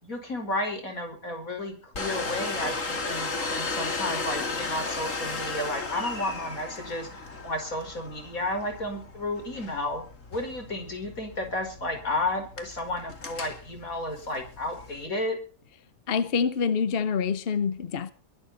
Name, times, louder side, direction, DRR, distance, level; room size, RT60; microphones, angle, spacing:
voice 1, 0.0-7.1 7.4-10.0 10.3-15.4, left 1 dB, 80° left, 5.7 m, -32 dB
Domestic sounds home sounds, 1.9-15.1, left 3 dB, 65° left, 3.0 m, -35 dB
voice 2, 16.1-18.1, left 6 dB, 45° left, 1.1 m, -26 dB
22.0 x 12.5 x 4.3 m
omnidirectional pair, 1.4 m